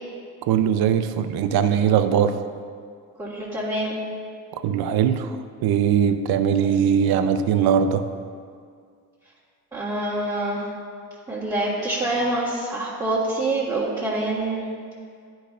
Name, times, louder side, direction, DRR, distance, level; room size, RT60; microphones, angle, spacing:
voice 1, 0.5-2.3 4.6-5.3 5.6-8.0, right 8 dB, 60° right, 10 dB, 0.6 m, -20 dB
voice 2, 3.2-4.0 6.6-6.7 9.7-10.7 11.3-14.7, right 2 dB, 10° right, -11 dB, 1.6 m, -26 dB
9.8 x 5.2 x 2.5 m, 2.2 s
supercardioid pair, 65°, 42 cm